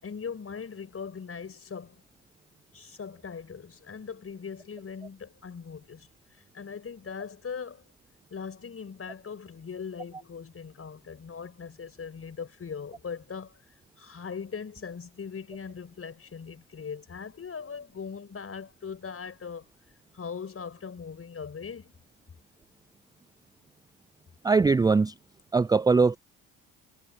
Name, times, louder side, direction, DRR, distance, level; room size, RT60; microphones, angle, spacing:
voice 1, 0.0-2.0 2.7-7.8 8.3-13.6 14.0-19.7 20.1-21.9, left 6 dB, 35° left, 5.5 m, -40 dB
voice 2, 24.4-25.1 25.5-26.2, right 4 dB, 10° right, 0.4 m, -21 dB
hypercardioid pair, 60°, 38 cm